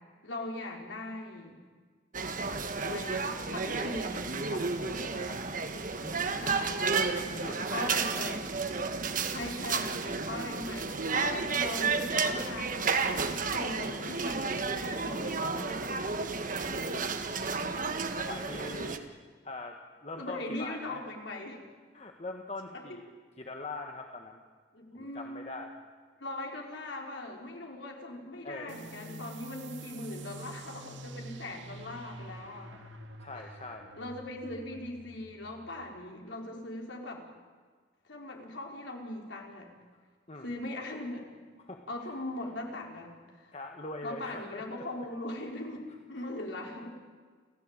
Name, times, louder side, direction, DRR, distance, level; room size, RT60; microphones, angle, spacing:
voice 1, 0.2-1.6 2.8-4.3 6.4-6.9 7.7-8.4 9.3-11.0 11.5-15.6 20.2-21.6 24.7-25.5 26.2-32.7 33.3-33.5 34.0-37.3 38.0-39.7 40.4-41.2 41.9-43.5 44.0-47.0, left 1 dB, 90° left, 1 dB, 4.5 m, -40 dB
sound 1, 2.1-19.0, right 4 dB, 45° right, 1.5 m, -32 dB
voice 2, 4.5-5.4 6.0-6.5 7.3-8.3 8.7-9.0 11.1-11.6 15.1-15.9 16.4-17.1 17.9-19.0 19.4-21.0 21.9-23.1 23.4-24.4 24.9-25.7 28.4-29.2 32.4-32.9 33.2-33.9 40.3-40.5 41.6-42.1 43.5-44.8, left 2 dB, 35° left, 3 dB, 1.5 m, -43 dB
sound 2, 28.7-35.9, right 2 dB, 85° right, 2.0 m, -47 dB
29.0 x 15.5 x 8.9 m, 1.5 s
head